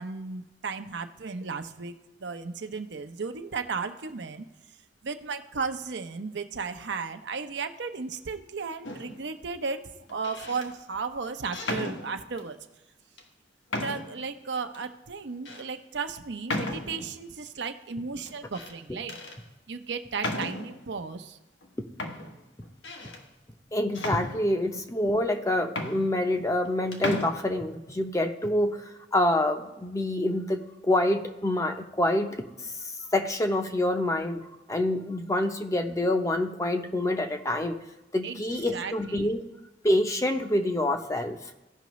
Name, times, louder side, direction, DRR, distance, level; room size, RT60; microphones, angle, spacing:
voice 1, 0.0-4.5 5.0-9.8 10.1-12.6 13.8-19.2 19.7-21.4 38.2-39.3, right 5 dB, 65° right, 7 dB, 0.7 m, -35 dB
sound 1, 8.8-9.3 10.1-10.7 11.5-12.5 13.2-13.3 13.7-14.2 14.7-14.8 15.5-15.6 16.5-17.1 18.3-18.8 19.1-19.4 20.2-20.8 21.6-21.7 22.0-23.2 23.9-24.8 25.4-25.5 25.7-26.7 26.9-27.3, left 2 dB, 80° left, 1.3 m, -35 dB
voice 2, 23.7-28.8 29.1-32.4 33.1-37.8 38.1-39.4 39.8-41.4, left 1 dB, 15° left, 6 dB, 0.7 m, -26 dB
16.5 x 5.8 x 3.1 m, 1.0 s
head